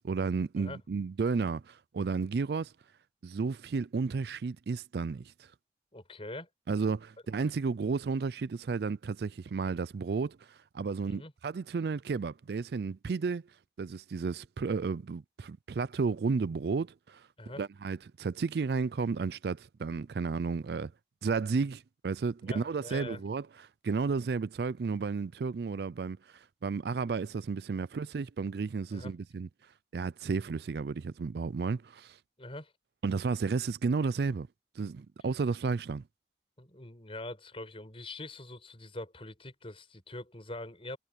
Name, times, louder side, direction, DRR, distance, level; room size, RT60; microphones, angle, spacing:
voice 1, 0.0-2.7 3.2-5.3 6.7-13.4 13.8-17.2 17.6-20.9 21.2-29.5 29.9-32.2 33.0-34.5 34.8-36.0, right 4 dB, 60° right, 0.4 m, -32 dB
voice 2, 5.9-6.5 11.0-11.3 17.4-17.6 22.4-23.2 28.9-29.1 32.4-32.7 36.6-41.0, left 2 dB, 35° left, 5.2 m, -43 dB
head